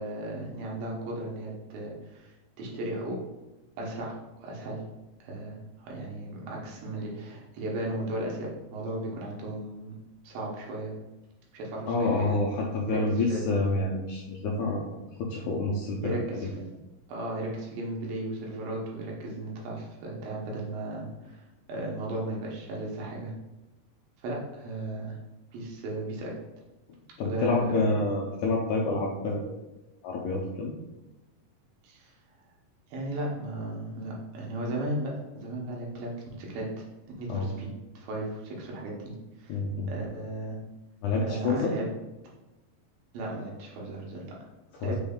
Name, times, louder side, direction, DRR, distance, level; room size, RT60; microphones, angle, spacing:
voice 1, 0.0-3.2 3.8-4.8 5.2-9.9 10.2-10.9 11.5-12.4 12.9-13.4 16.0-16.5 17.1-21.4 21.7-23.3 24.2-25.2 25.5-26.4 27.2-28.0 31.8-32.1 32.9-36.9 37.2-37.7 37.9-39.6 39.9-40.6 41.2-41.9 43.1-44.4 44.8-45.0, right 1 dB, 90° right, -2 dB, 2.8 m, -35 dB
voice 2, 11.9-14.9 15.2-16.2 16.4-16.5 27.2-29.6 30.0-30.7 37.3-37.5 39.5-39.9 41.0-41.7 44.7-45.0, left 3 dB, 85° left, -2 dB, 1.7 m, -28 dB
6.1 x 2.3 x 3.5 m, 1.0 s
omnidirectional pair, 4.0 m